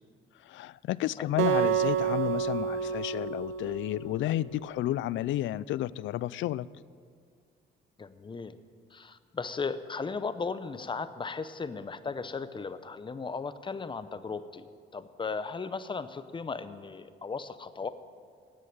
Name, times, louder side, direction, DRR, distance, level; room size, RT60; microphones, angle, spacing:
voice 1, 0.4-6.7, left 14 dB, 75° left, 20 dB, 0.4 m, -31 dB
voice 2, 1.2-1.5 8.0-8.6 8.9-14.6 14.9-17.9, left 4 dB, 25° left, 12 dB, 0.7 m, -36 dB
Acoustic guitar, 1.4-4.6, right 8 dB, 85° right, 0.8 m, -29 dB
16.5 x 6.4 x 8.8 m, 2.1 s
cardioid pair, 90°, 20 cm